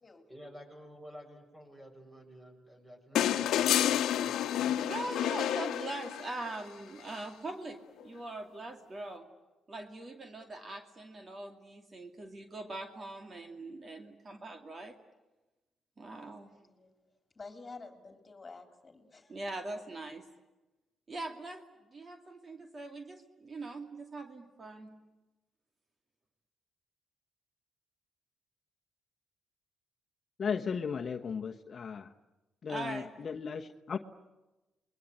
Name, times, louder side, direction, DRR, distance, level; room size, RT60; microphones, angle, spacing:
voice 1, 0.3-4.8, equal, 15° right, 4 dB, 7.3 m, -52 dB
sound 1, 3.2-6.5 8.0-8.1, left 11 dB, 80° left, 1.1 m, -29 dB
voice 2, 4.8-9.3 9.7-15.0 16.0-16.5 19.3-20.2 21.1-25.0 32.7-33.1, right 2 dB, 35° right, 5 dB, 2.4 m, -42 dB
voice 3, 16.0-16.9 17.3-19.4, left 3 dB, 30° left, 6 dB, 3.3 m, -50 dB
voice 4, 30.4-32.1 32.6-34.0, left 6 dB, 45° left, 5 dB, 1.2 m, -36 dB
28.5 x 22.0 x 9.6 m, 1.1 s
cardioid pair, 90°, 0 cm